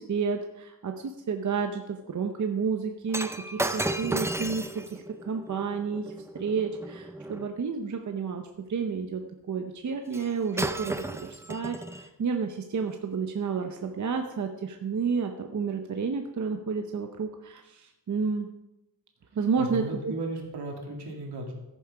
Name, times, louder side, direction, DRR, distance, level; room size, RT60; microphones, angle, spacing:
voice 1, 0.0-9.2 9.5-18.5 19.3-20.1, right 5 dB, 45° right, 5 dB, 0.7 m, -31 dB
Shatter, 3.1-7.5 10.1-10.3 10.6-12.1 12.8-13.0, right 1 dB, 5° right, 0.4 m, -34 dB
voice 2, 19.6-21.5, right 2 dB, 80° right, 1 dB, 2.5 m, -35 dB
14.0 x 7.0 x 4.9 m, 0.97 s
wide cardioid pair, 175°, 39 cm